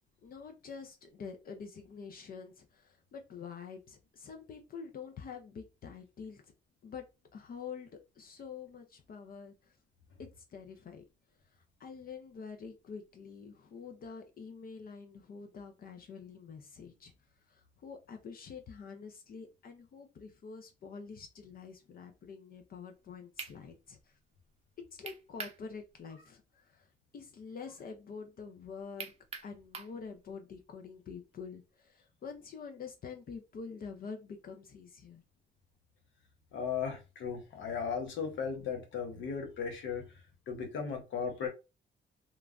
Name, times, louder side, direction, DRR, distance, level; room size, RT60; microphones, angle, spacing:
voice 1, 0.2-6.4 6.8-7.0 7.3-9.5 10.5-11.0 11.8-17.1 17.5-24.0 25.0-26.9 27.1-29.1 29.4-35.2, left 5 dB, 50° left, 0.5 m, -46 dB
sound 1, 23.0-23.1 23.4-23.6 25.1-25.6 26.0-26.1 29.0-30.0, right 5 dB, 30° right, 0.6 m, -42 dB
voice 2, 36.5-40.2 40.5-41.5, left 6 dB, 70° left, 0.9 m, -36 dB
3.0 x 2.3 x 2.4 m
cardioid pair, 90°, 20 cm